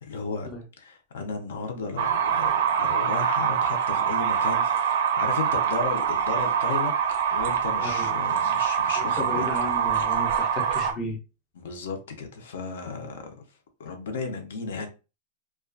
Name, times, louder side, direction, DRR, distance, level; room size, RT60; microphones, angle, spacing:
voice 1, 0.0-0.5 0.8-6.9 7.3-9.4 11.6-13.2 13.8-14.9, left 4 dB, 70° left, 0.6 m, -34 dB
sound 1, 2.0-10.9, right 8 dB, 55° right, 0.4 m, -24 dB
voice 2, 7.8-8.1 9.0-11.2, left 1 dB, 20° left, 0.5 m, -34 dB
2.3 x 2.2 x 2.3 m
supercardioid pair, 180°, 0 cm